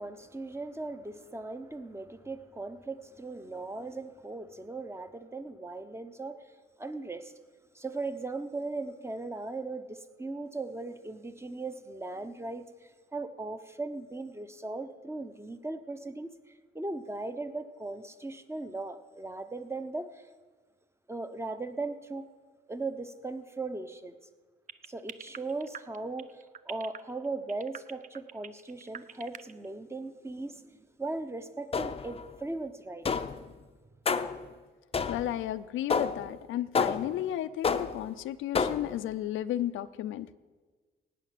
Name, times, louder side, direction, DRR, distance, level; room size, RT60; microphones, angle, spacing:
voice 1, 0.0-6.4 6.8-7.3 7.7-16.3 16.7-20.3 21.1-22.3 22.7-24.2 24.9-33.1, right 3 dB, 15° right, 10 dB, 0.9 m, -38 dB
sound 1, 24.7-29.7, right 8 dB, 40° right, 0.6 m, -43 dB
sound 2, 31.7-32.2 33.1-33.5 34.1-34.5 34.9-35.4 35.9-36.3 36.8-37.2 37.6-38.1 38.6-39.0, left 5 dB, 30° left, 0.6 m, -30 dB
voice 2, 35.1-40.3, left 12 dB, 80° left, 13 dB, 0.5 m, -33 dB
17.0 x 5.8 x 9.3 m, 1.4 s
cardioid pair, 90°, 20 cm